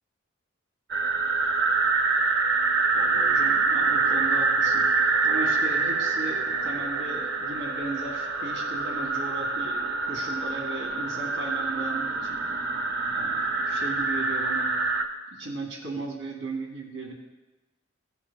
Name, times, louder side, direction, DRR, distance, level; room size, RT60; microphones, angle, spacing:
sound 1, 0.9-15.0, right 4 dB, 55° right, 0.9 m, -25 dB
voice 1, 2.9-4.9 5.2-12.4 13.1-14.7 15.3-17.1, right 3 dB, 85° right, 0 dB, 1.7 m, -36 dB
16.5 x 7.8 x 2.2 m, 1.1 s
head